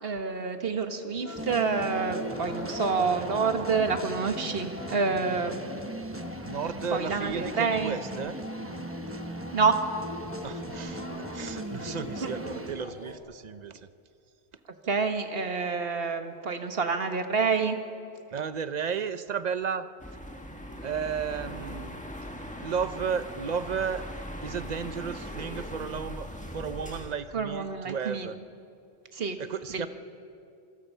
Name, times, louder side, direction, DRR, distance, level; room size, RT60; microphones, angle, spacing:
voice 1, 0.0-5.7 6.9-8.0 9.5-9.8 12.2-12.3 14.9-17.8 27.3-28.3 29.1-29.4 29.7-29.9, right 5 dB, 65° right, 6 dB, 1.6 m, -28 dB
sound 1, 1.1-13.2, left 3 dB, 40° left, 2.1 m, -41 dB
sound 2, 1.4-12.7, right 2 dB, 15° right, 0.9 m, -39 dB
voice 2, 6.4-8.4 10.4-13.9 18.3-19.9 20.8-22.0 22.6-24.0 24.4-28.4 29.4-29.9, right 6 dB, 45° right, 12 dB, 0.8 m, -33 dB
sound 3, 20.0-27.1, equal, 5° left, 1.5 m, -40 dB
26.5 x 21.0 x 5.6 m, 2.5 s
omnidirectional pair, 1.1 m